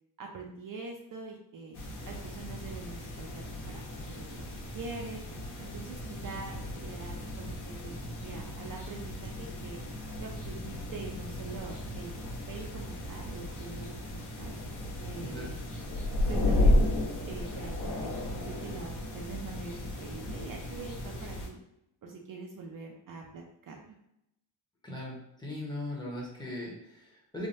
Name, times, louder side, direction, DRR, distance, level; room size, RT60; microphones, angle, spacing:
voice 1, 0.2-1.8 2.0-4.5 4.7-5.2 5.6-9.8 10.2-12.2 12.5-14.6 15.0-15.6 16.2-16.9 17.3-21.6 22.0-23.9, right 4 dB, 50° right, 0 dB, 0.5 m, -44 dB
sound 1, 1.7-21.5, left 1 dB, 70° left, 1.1 m, -34 dB
voice 2, 24.8-27.5, left 1 dB, 10° left, -4 dB, 0.8 m, -39 dB
3.3 x 2.2 x 2.6 m, 0.78 s
wide cardioid pair, 145°, 43 cm